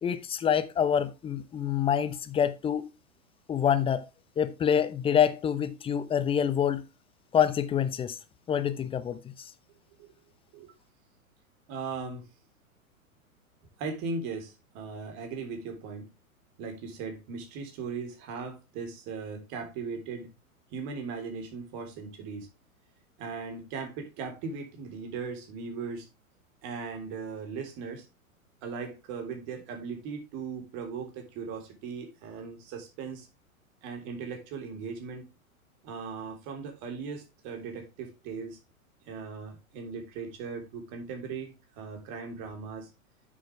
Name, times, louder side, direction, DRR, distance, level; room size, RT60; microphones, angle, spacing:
voice 1, 0.0-2.9 3.5-4.0 4.4-6.8 7.3-8.2 8.5-9.2, left 8 dB, 15° left, 0.7 m, -26 dB
voice 2, 11.7-12.2 13.8-16.1 16.6-20.3 20.7-22.5 23.2-26.1 26.6-28.0 28.6-33.3 33.8-35.3 35.8-38.6 39.1-42.9, right 5 dB, 40° right, 3.6 m, -38 dB
9.3 x 7.5 x 3.3 m
figure-of-eight pair, 105°, 43 cm